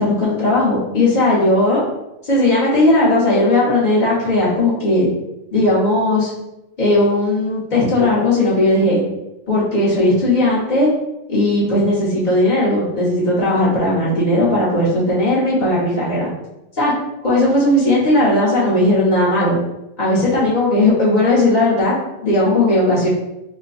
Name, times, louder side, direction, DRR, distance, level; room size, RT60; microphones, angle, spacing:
voice 1, 0.0-1.8 2.2-5.1 5.5-6.3 6.8-9.0 9.5-10.9 11.3-16.3 16.8-16.9 17.2-19.6 20.0-21.9 22.2-23.1, left 1 dB, 40° left, -7 dB, 1.1 m, -16 dB
3.4 x 2.2 x 3.9 m, 0.91 s
omnidirectional pair, 1.4 m